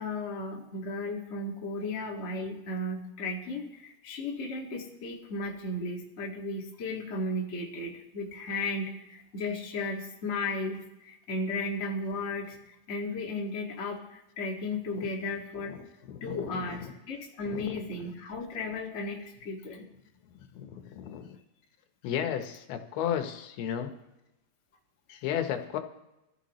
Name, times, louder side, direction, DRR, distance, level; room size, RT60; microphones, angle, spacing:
voice 1, 0.0-15.7 16.2-19.9, left 2 dB, 30° left, -2 dB, 1.3 m, -35 dB
voice 2, 16.1-16.9 17.5-17.6 20.5-21.4 22.0-23.9 25.1-25.8, left 9 dB, 80° left, 6 dB, 3.0 m, -34 dB
23.5 x 14.5 x 3.1 m, 0.93 s
omnidirectional pair, 4.5 m